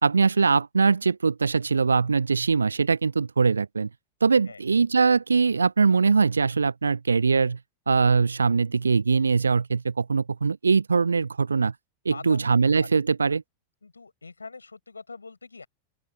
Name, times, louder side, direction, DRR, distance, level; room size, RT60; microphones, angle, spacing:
voice 1, 0.0-3.9 4.2-7.6 7.9-11.7 12.0-13.4, right 4 dB, 75° right, 0.7 m, -22 dB
voice 2, 12.1-12.5 12.8-12.9 13.8-15.7, left 4 dB, 80° left, 6.5 m, -42 dB
open air
figure-of-eight pair, 90°, 0 cm